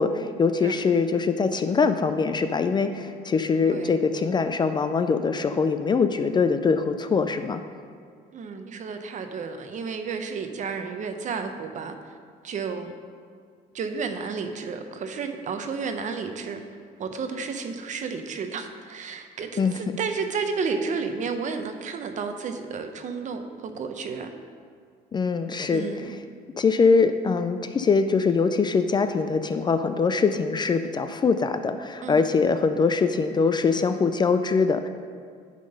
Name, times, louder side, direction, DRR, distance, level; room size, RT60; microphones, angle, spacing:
voice 1, 0.0-7.6 19.6-19.8 25.1-25.9 26.6-34.9, left 5 dB, 25° left, 9 dB, 0.3 m, -23 dB
voice 2, 8.3-12.2 12.4-12.9 13.7-16.6 17.0-24.3 25.7-26.1 32.0-32.3, right 5 dB, 45° right, 7 dB, 0.7 m, -32 dB
10.5 x 3.8 x 5.3 m, 2.2 s
cardioid pair, 110°, 17 cm